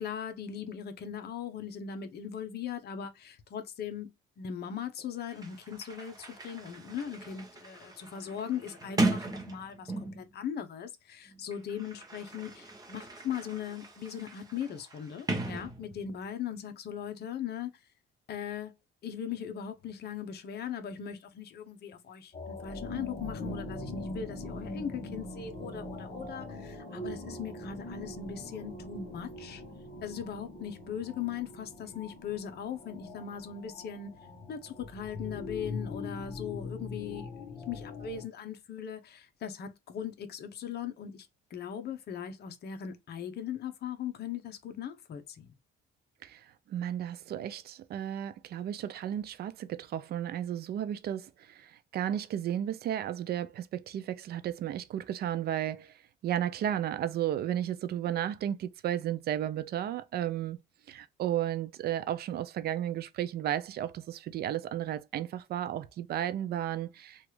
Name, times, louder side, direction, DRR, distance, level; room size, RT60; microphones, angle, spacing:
voice 1, 0.0-4.1 4.4-17.7 18.3-18.7 19.0-29.6 30.0-34.2 34.5-45.5, left 8 dB, 50° left, 0.7 m, -39 dB
Sliding door, 5.0-5.1 5.3-10.3 11.3-16.2, right 2 dB, 20° right, 0.7 m, -37 dB
sound 1, 22.3-38.2, left 2 dB, 30° left, 1.0 m, -42 dB
voice 2, 46.2-60.6 60.9-67.3, right 11 dB, 50° right, 0.4 m, -34 dB
2.9 x 2.4 x 3.0 m
cardioid pair, 130°, 21 cm